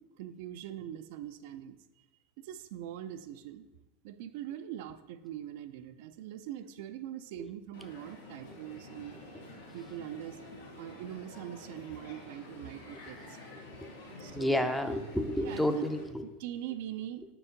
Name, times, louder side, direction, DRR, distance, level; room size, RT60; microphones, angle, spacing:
voice 1, 0.0-1.8 2.4-3.7 4.0-9.1 9.7-13.4 14.2-14.7 15.4-15.9 16.2-17.3, right 11 dB, 65° right, 10 dB, 0.3 m, -42 dB
Crowd, 7.7-16.0, left 2 dB, 90° left, 1.4 m, -49 dB
voice 2, 14.3-16.2, left 1 dB, 5° left, 8 dB, 0.5 m, -30 dB
4.5 x 4.4 x 5.0 m, 1.1 s
hypercardioid pair, 110°, 0 cm